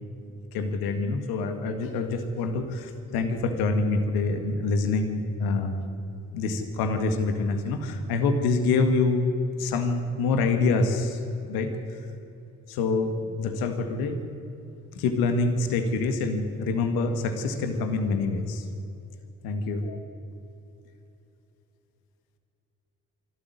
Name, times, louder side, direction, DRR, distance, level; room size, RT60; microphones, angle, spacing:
voice 1, 0.5-5.8 6.3-9.3 9.6-11.2 11.5-11.7 12.7-14.2 14.9-18.6 19.4-20.0, left 3 dB, 90° left, 7 dB, 1.9 m, -26 dB
24.0 x 13.0 x 9.7 m, 2.8 s
supercardioid pair, 50°, 35 cm